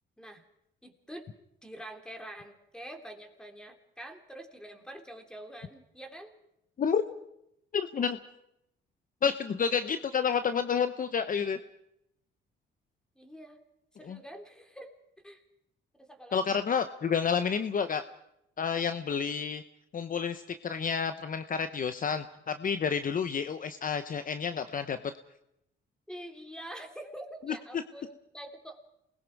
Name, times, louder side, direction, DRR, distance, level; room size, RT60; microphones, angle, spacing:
voice 1, 0.8-1.3 1.6-6.3 9.7-9.8 13.1-13.6 13.9-14.9 15.2-15.4 16.0-16.8 26.1-28.9, right 1 dB, 5° left, 4 dB, 3.2 m, -46 dB
voice 2, 7.7-8.2 9.2-11.6 14.1-14.2 16.3-18.0 18.6-19.6 19.9-25.0, left 6 dB, 45° left, 10 dB, 0.9 m, -30 dB
28.0 x 20.5 x 4.7 m, 0.80 s
cardioid pair, 90°, 20 cm